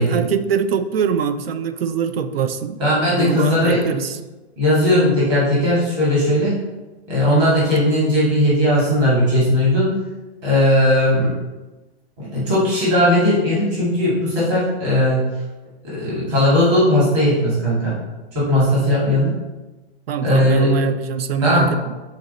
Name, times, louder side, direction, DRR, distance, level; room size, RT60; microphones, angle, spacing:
voice 1, 0.0-4.2 19.1-19.2 20.1-22.0, right 6 dB, 65° right, 10 dB, 0.6 m, -23 dB
voice 2, 2.8-3.8 4.6-6.6 7.1-9.9 10.4-11.3 12.2-15.2 15.9-18.0 18.3-19.3 20.2-20.7 21.4-21.7, left 1 dB, 25° right, -8 dB, 2.1 m, -17 dB
6.6 x 4.0 x 4.1 m, 1.1 s
hypercardioid pair, 180°, 32 cm